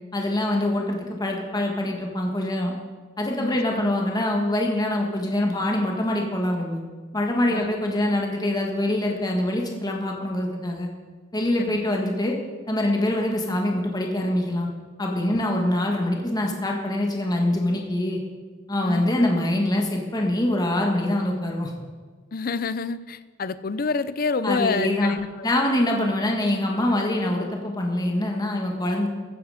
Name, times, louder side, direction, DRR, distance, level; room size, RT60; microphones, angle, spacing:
voice 1, 0.1-2.7 3.2-6.8 7.1-10.9 11.3-12.4 12.7-14.7 15.0-18.2 18.7-21.7 24.4-25.1 25.4-29.1, left 1 dB, 20° left, 1 dB, 1.7 m, -24 dB
voice 2, 3.4-3.9 7.5-7.7 11.6-11.8 15.3-15.4 18.8-19.1 22.3-25.3, left 4 dB, 45° left, 15 dB, 0.5 m, -28 dB
15.0 x 9.9 x 5.0 m, 1.5 s
head